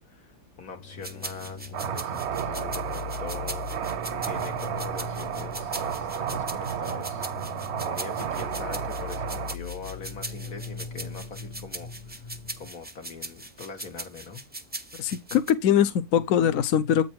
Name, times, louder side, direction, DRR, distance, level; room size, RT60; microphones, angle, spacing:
voice 1, 0.0-7.3 7.9-12.3 12.6-14.4, left 4 dB, 85° left, 2.2 m, -42 dB
sound 1, 0.7-12.7, left 6 dB, 45° left, 0.7 m, -40 dB
sound 2, 1.0-15.5, right 2 dB, 15° right, 0.4 m, -40 dB
sound 3, 1.7-9.6, right 9 dB, 60° right, 0.8 m, -32 dB
voice 2, 15.0-17.0, left 9 dB, 70° left, 1.0 m, -22 dB
8.5 x 4.3 x 4.5 m
omnidirectional pair, 1.5 m